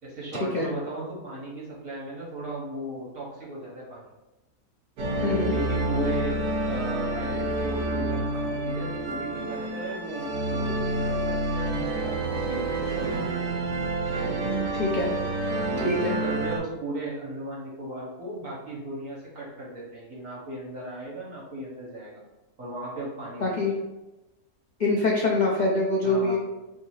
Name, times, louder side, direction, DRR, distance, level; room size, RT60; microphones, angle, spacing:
voice 1, 0.0-4.1 5.1-6.4 6.7-13.8 14.1-14.8 15.7-22.2 22.6-23.7 26.0-26.4, right 1 dB, 60° right, -5 dB, 1.8 m, -36 dB
sound 1, 5.0-16.6, right 2 dB, 80° right, 1.5 m, -28 dB
voice 2, 5.2-5.5 14.8-15.1 15.8-16.2 23.4-23.7 24.8-26.4, left 2 dB, 65° left, -3 dB, 0.4 m, -24 dB
3.5 x 2.8 x 4.7 m, 1.0 s
omnidirectional pair, 1.6 m